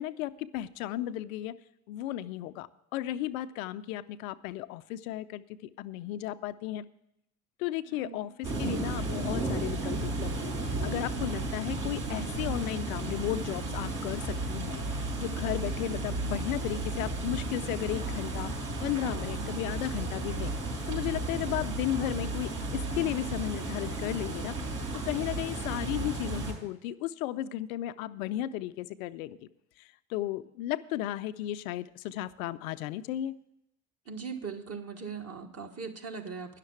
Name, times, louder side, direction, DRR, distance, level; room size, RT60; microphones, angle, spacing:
voice 1, 0.0-1.5 1.9-6.8 7.6-18.5 18.8-20.5 20.9-24.5 24.9-29.4 29.8-33.3, left 13 dB, 75° left, 13 dB, 0.6 m, -34 dB
voice 2, 7.9-8.3 34.0-36.6, right 5 dB, 35° right, 3 dB, 1.6 m, -40 dB
sound 1, 8.4-26.5, right 2 dB, 65° right, 5.3 m, -33 dB
10.0 x 6.6 x 8.7 m, 0.82 s
hypercardioid pair, 55°, 41 cm